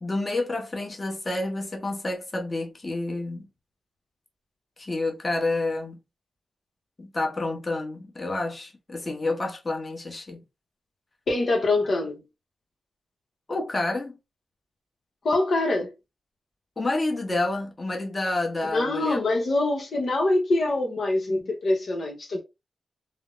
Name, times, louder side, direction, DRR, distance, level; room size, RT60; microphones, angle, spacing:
voice 1, 0.0-3.5 4.8-6.0 7.0-10.4 13.5-14.2 16.8-19.2, left 2 dB, 35° left, 0.9 m, -29 dB
voice 2, 11.3-12.2 15.2-15.9 18.6-22.4, left 2 dB, 65° left, 0.8 m, -24 dB
3.3 x 2.0 x 2.5 m
cardioid pair, 50°, 0 cm